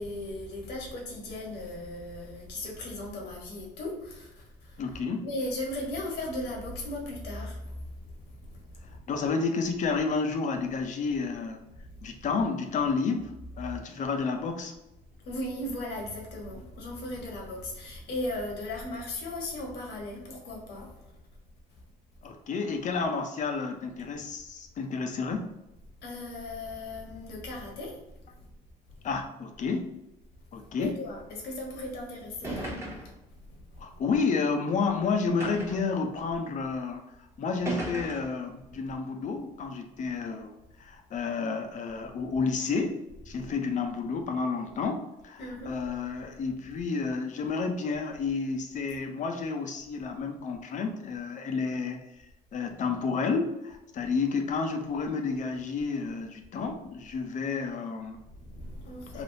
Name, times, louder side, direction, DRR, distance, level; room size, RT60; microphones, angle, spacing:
voice 1, 0.0-4.8 5.2-9.1 11.8-12.2 15.2-21.1 21.7-21.8 22.2-22.3 26.0-28.0 28.3-28.5 30.6-32.8 33.0-33.8 43.3-43.4 45.4-45.7 58.2-59.2, left 1 dB, 75° left, 0 dB, 1.2 m, -37 dB
voice 2, 4.8-5.3 9.1-11.6 12.0-14.7 22.2-25.5 29.0-29.9 30.5-31.0 33.8-37.0 37.4-43.0 43.3-52.0 52.5-58.2 59.1-59.2, left 4 dB, 50° left, 5 dB, 0.6 m, -30 dB
sound 1, 31.8-31.9 32.4-33.2 34.1-34.2 35.4-35.9 36.8-36.9 37.7-38.4, right 2 dB, 15° right, 1.1 m, -36 dB
3.4 x 2.7 x 2.6 m, 0.93 s
cardioid pair, 110°, 17 cm